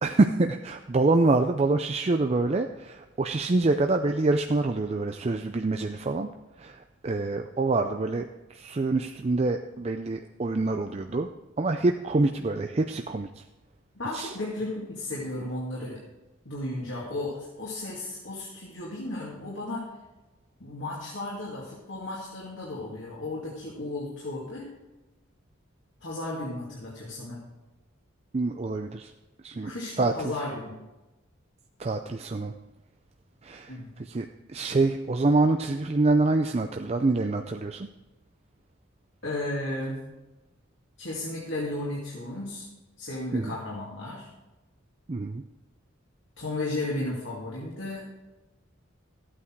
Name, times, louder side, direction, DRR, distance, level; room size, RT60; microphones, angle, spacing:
voice 1, 0.0-6.3 6.6-11.3 11.6-13.4 14.1-14.3 28.3-29.1 29.4-30.3 31.8-32.5 33.4-33.7 34.0-37.9 43.3-43.6 45.1-45.4, right 2 dB, 30° right, 5 dB, 0.4 m, -26 dB
voice 2, 13.9-16.0 16.4-19.8 20.6-24.7 26.0-27.5 29.6-30.7 33.7-33.9 39.2-40.0 41.0-42.7 43.0-44.3 46.4-48.0, left 2 dB, 60° left, -5 dB, 2.5 m, -34 dB
14.0 x 8.7 x 4.7 m, 1.1 s
head